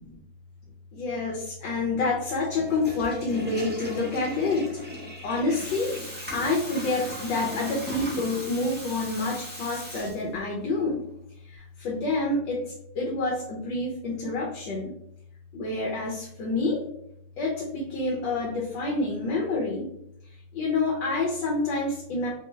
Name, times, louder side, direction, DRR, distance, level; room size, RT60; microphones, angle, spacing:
voice 1, 0.9-4.7 5.2-6.0 6.3-11.0 11.5-12.6 12.9-14.9 15.5-16.8 17.4-19.9 20.5-22.3, left 3 dB, 75° left, -2 dB, 1.4 m, -28 dB
Water tap faucet / Toilet flush, 2.6-10.6, equal, 15° right, 0.4 m, -38 dB
4.2 x 2.2 x 3.1 m, 0.77 s
omnidirectional pair, 2.1 m